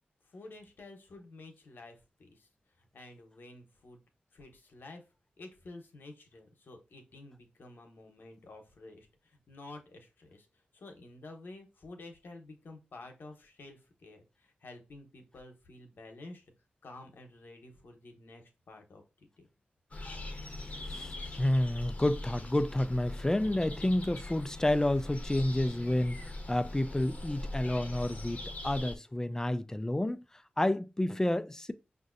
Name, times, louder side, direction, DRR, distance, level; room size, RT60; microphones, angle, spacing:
voice 1, 0.3-2.5 2.9-4.0 4.3-5.0 5.4-10.5 10.7-14.2 14.6-16.4 16.8-19.0 19.4-19.5, left 2 dB, 70° left, 0.9 m, -50 dB
sound 1, 19.9-29.0, left 2 dB, 45° left, 0.9 m, -42 dB
voice 2, 20.9-30.2 30.6-31.7, left 1 dB, 15° left, 0.4 m, -30 dB
5.2 x 2.6 x 2.5 m
cardioid pair, 45°, 4 cm